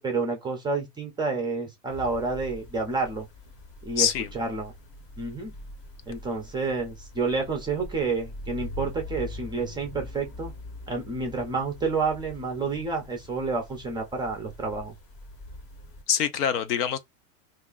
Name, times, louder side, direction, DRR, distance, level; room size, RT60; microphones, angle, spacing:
voice 1, 0.0-3.3 3.8-4.1 4.3-4.7 5.2-5.5 6.1-10.5 10.9-14.9, right 4 dB, 10° right, 0.4 m, -29 dB
sound 1, 1.9-16.0, left 1 dB, 30° left, 0.8 m, -43 dB
voice 2, 4.0-4.3 16.1-17.0, left 8 dB, 80° left, 0.8 m, -24 dB
2.5 x 2.2 x 3.7 m
supercardioid pair, 130°, 46 cm